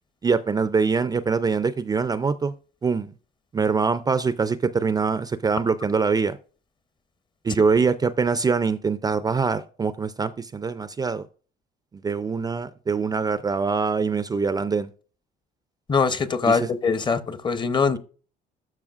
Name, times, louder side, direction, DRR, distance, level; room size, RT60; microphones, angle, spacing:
voice 1, 0.2-2.5 2.8-3.1 3.5-6.4 7.4-11.3 11.9-14.9 16.4-16.7, right 5 dB, 20° right, 0.4 m, -24 dB
voice 2, 15.9-18.0, left 5 dB, 25° left, 0.8 m, -22 dB
12.0 x 5.5 x 2.4 m
cardioid pair, 110°, 17 cm